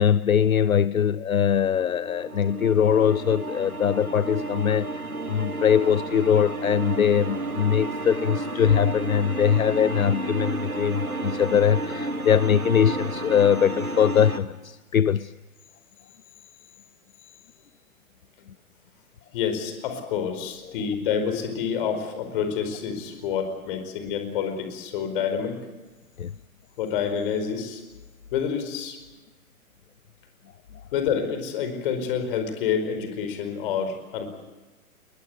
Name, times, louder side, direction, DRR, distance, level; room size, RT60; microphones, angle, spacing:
voice 1, 0.0-15.3 26.2-26.3, left 8 dB, 70° left, 19 dB, 0.7 m, -22 dB
sound 1, 1.6-14.4, right 2 dB, 85° right, 2.1 m, -32 dB
voice 2, 19.3-25.7 26.8-27.8 28.3-29.0 30.9-34.3, left 7 dB, 40° left, 8 dB, 4.8 m, -28 dB
21.5 x 21.0 x 8.0 m, 1.2 s
figure-of-eight pair, 120°, 43 cm